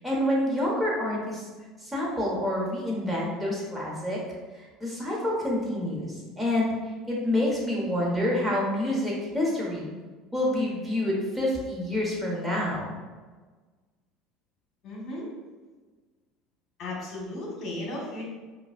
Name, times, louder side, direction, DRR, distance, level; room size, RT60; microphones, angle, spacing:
voice 1, 0.0-1.4 1.8-4.2 4.5-6.7 7.1-9.9 10.3-12.9, left 1 dB, 10° right, -5 dB, 1.4 m, -27 dB
voice 2, 14.8-15.3 16.8-18.2, left 1 dB, 45° left, -3 dB, 1.4 m, -35 dB
4.6 x 2.4 x 2.5 m, 1.3 s
hypercardioid pair, 85°, 0 cm